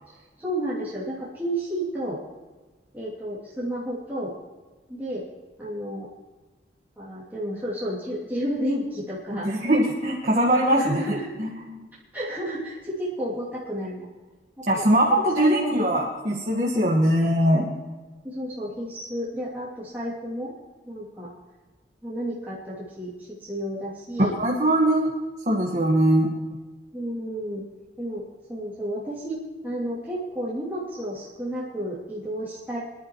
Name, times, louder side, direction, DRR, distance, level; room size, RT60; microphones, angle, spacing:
voice 1, 0.4-2.2 2.9-4.3 4.9-5.2 5.6-6.1 7.0-9.5 10.6-11.3 12.1-14.1 14.6-15.8 18.2-20.5 20.8-21.3 22.0-24.3 26.9-27.6 28.0-28.2 28.5-29.4 29.6-32.8, equal, 10° right, -9 dB, 2.9 m, -31 dB
voice 2, 9.4-11.0 11.4-11.8 14.7-17.7 24.4-25.1 25.5-26.3, right 1 dB, 40° right, -3 dB, 1.7 m, -21 dB
25.5 x 11.5 x 3.2 m, 1.3 s
head